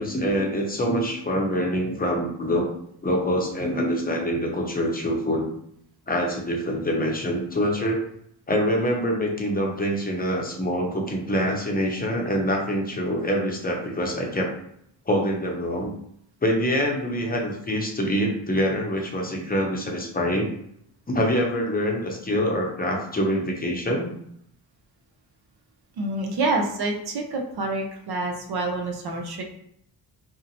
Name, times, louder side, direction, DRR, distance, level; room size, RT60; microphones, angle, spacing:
voice 1, 0.0-2.7 3.0-5.5 6.1-8.0 8.5-14.5 15.1-15.9 16.4-20.5 21.1-24.1, equal, 20° left, 0 dB, 0.7 m, -25 dB
voice 2, 26.0-29.4, right 2 dB, 60° right, 2 dB, 0.6 m, -27 dB
2.6 x 2.1 x 2.8 m, 0.72 s
cardioid pair, 60°, 45 cm